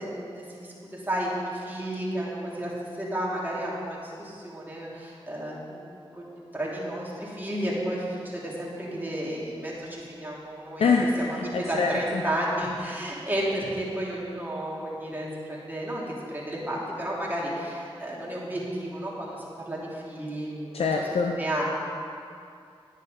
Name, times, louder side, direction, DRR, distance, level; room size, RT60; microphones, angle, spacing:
voice 1, 0.0-10.9 11.3-16.0 16.3-20.9 21.4-21.6, right 1 dB, 20° right, -6 dB, 3.0 m, -32 dB
voice 2, 10.8-12.2 20.7-21.4, left 4 dB, 80° left, 2 dB, 0.6 m, -25 dB
10.0 x 10.0 x 5.2 m, 2.4 s
wide cardioid pair, 65°, 10 cm